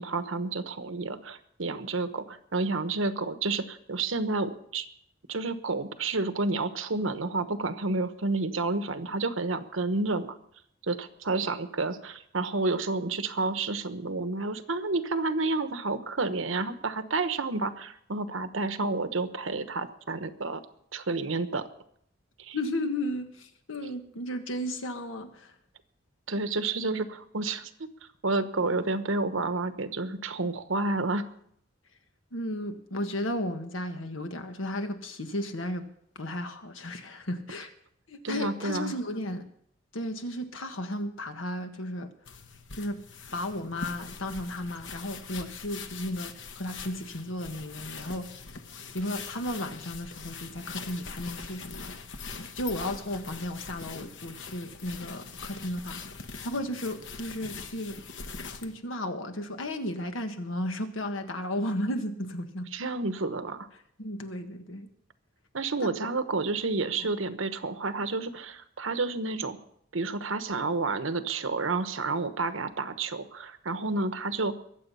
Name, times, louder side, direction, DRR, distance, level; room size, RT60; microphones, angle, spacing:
voice 1, 0.0-4.9 5.3-10.4 10.8-20.6 20.9-21.6 22.4-22.6 26.3-27.7 28.2-31.2 38.2-38.9 62.7-63.7 65.5-69.6 69.9-74.5, right 3 dB, 85° right, 10 dB, 1.1 m, -30 dB
voice 2, 22.5-25.5 32.3-35.9 36.1-37.7 38.1-39.4 39.9-42.1 42.8-43.0 43.3-48.3 48.9-51.9 52.5-56.0 56.4-58.0 58.6-62.7 64.0-64.9 65.8-66.1 67.0-67.1, left 1 dB, 85° left, 7 dB, 1.5 m, -34 dB
sound 1, 42.3-58.7, left 5 dB, 65° left, 1.1 m, -42 dB
22.5 x 8.0 x 5.6 m, 0.69 s
head